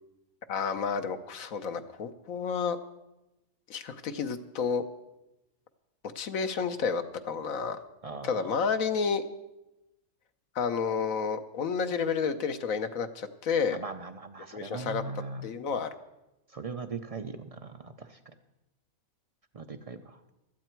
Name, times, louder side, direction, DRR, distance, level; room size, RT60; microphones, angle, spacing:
voice 1, 0.5-2.8 3.7-4.8 6.1-7.8 8.2-9.2 10.5-13.8 14.5-15.0 15.4-15.9, left 5 dB, 70° left, 9 dB, 1.3 m, -30 dB
voice 2, 8.0-8.5 13.7-15.5 16.5-18.3 19.5-20.2, right 4 dB, 50° right, 9 dB, 0.4 m, -40 dB
16.5 x 13.0 x 4.5 m, 0.94 s
omnidirectional pair, 1.5 m